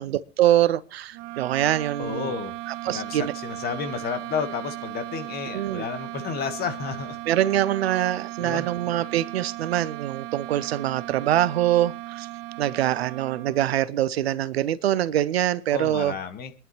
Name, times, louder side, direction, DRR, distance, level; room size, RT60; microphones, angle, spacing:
voice 1, 0.0-2.3 2.7-3.3 5.5-5.9 7.3-12.3 12.6-16.1, right 12 dB, 55° right, 19 dB, 0.9 m, -24 dB
sound 1, 1.1-13.8, right 18 dB, 30° right, 0.6 m, -37 dB
voice 2, 2.0-2.5 2.8-7.2 8.4-8.7 15.7-16.5, left 6 dB, 25° left, 9 dB, 1.6 m, -31 dB
25.0 x 11.0 x 3.1 m, 0.33 s
figure-of-eight pair, 100°, 37 cm